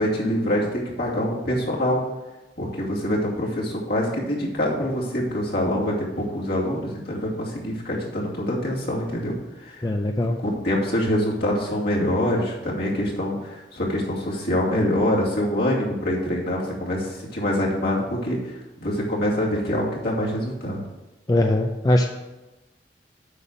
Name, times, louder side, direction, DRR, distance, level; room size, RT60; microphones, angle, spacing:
voice 1, 0.0-2.0 2.6-9.9 10.4-20.8, left 1 dB, 60° left, -4 dB, 2.5 m, -25 dB
voice 2, 9.8-10.4 21.3-22.1, left 1 dB, 20° left, 4 dB, 0.5 m, -21 dB
8.2 x 5.6 x 6.4 m, 1.0 s
head